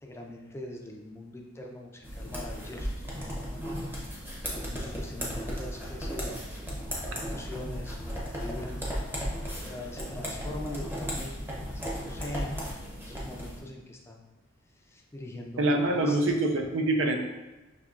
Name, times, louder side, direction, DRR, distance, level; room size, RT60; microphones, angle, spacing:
voice 1, 0.0-3.9 4.5-6.4 7.1-9.0 9.6-11.3 11.7-12.6 12.9-14.3 14.9-16.2, left 1 dB, 15° left, 0 dB, 0.4 m, -42 dB
sound 1, 2.0-13.6, equal, 10° right, 0.7 m, -35 dB
voice 2, 15.6-17.2, right 2 dB, 80° right, 3 dB, 0.6 m, -25 dB
5.7 x 2.8 x 2.4 m, 1.1 s
head